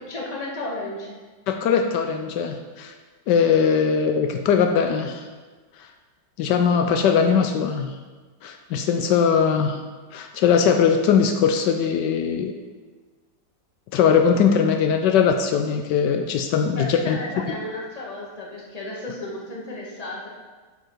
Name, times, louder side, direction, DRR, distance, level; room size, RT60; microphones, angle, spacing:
voice 1, 0.1-1.2 16.7-20.3, left 2 dB, 25° left, -3 dB, 1.4 m, -33 dB
voice 2, 1.5-2.9 3.3-5.2 5.8-5.9 6.4-7.9 8.4-9.8 10.1-12.5 13.9-17.2, left 7 dB, 80° left, 5 dB, 1.2 m, -20 dB
9.3 x 5.6 x 4.5 m, 1.4 s
omnidirectional pair, 1.9 m